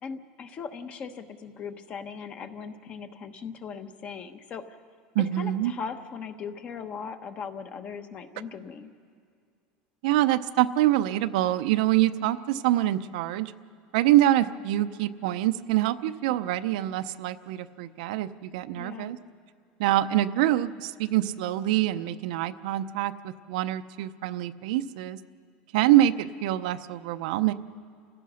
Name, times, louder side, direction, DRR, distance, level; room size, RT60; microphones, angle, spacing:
voice 1, 0.0-4.6 5.4-8.9 18.8-19.1, left 6 dB, 30° left, 9 dB, 1.1 m, -39 dB
voice 2, 5.1-5.7 10.0-13.5 13.9-19.2 19.8-25.2 25.7-27.5, right 14 dB, 80° right, 11 dB, 0.7 m, -25 dB
29.0 x 16.0 x 6.3 m, 2.2 s
cardioid pair, 155°, 4 cm